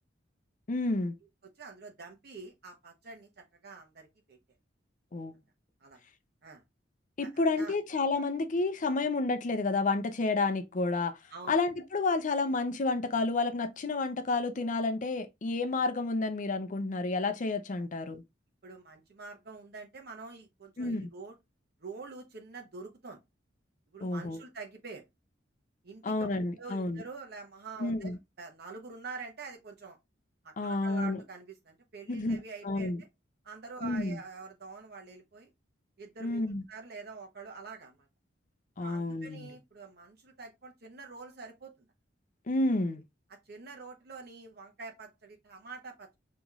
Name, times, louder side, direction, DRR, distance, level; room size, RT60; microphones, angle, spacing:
voice 1, 0.7-1.1 5.1-5.3 7.2-11.2 11.5-18.2 20.8-21.1 24.0-24.4 26.0-27.0 27.8-28.2 30.6-31.2 32.1-32.4 32.6-33.0 33.8-34.2 36.2-36.6 38.8-39.5 42.5-43.0, left 3 dB, 45° left, 0.5 m, -30 dB
voice 2, 1.6-4.4 5.8-6.0 6.4-6.6 7.2-7.7 11.3-11.6 18.6-21.4 21.8-23.2 23.9-25.0 25.8-26.3 26.6-28.1 28.4-30.0 30.4-32.9 33.4-35.5 36.0-38.1 38.8-41.9 43.5-46.1, right 4 dB, 60° right, 0.9 m, -46 dB
5.6 x 3.0 x 2.4 m
head